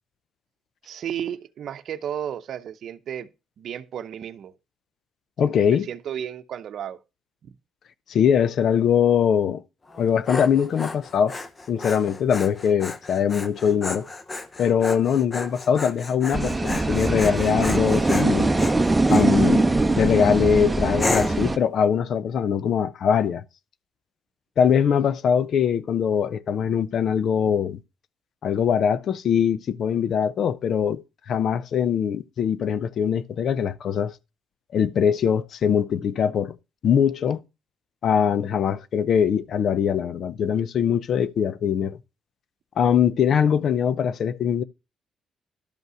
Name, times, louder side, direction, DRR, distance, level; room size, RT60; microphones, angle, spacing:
voice 1, 0.8-3.3 3.6-4.5 5.4-7.0 7.4-7.5 24.8-24.9, right 9 dB, 65° right, 0.7 m, -33 dB
voice 2, 5.4-5.9 8.1-9.6 10.0-11.3 11.7-14.1 14.6-18.5 19.1-19.7 20.0-23.4 24.6-27.8 28.4-34.1 34.7-36.6 36.8-37.4 38.0-42.0 42.8-44.6, left 8 dB, 65° left, 0.6 m, -22 dB
Dog, 9.9-19.3 19.9-20.3 21.0-21.5, left 2 dB, 30° left, 1.0 m, -33 dB
sound 1, 16.3-21.6, right 2 dB, 15° right, 0.8 m, -21 dB
12.0 x 5.5 x 6.1 m
cardioid pair, 90°, 0 cm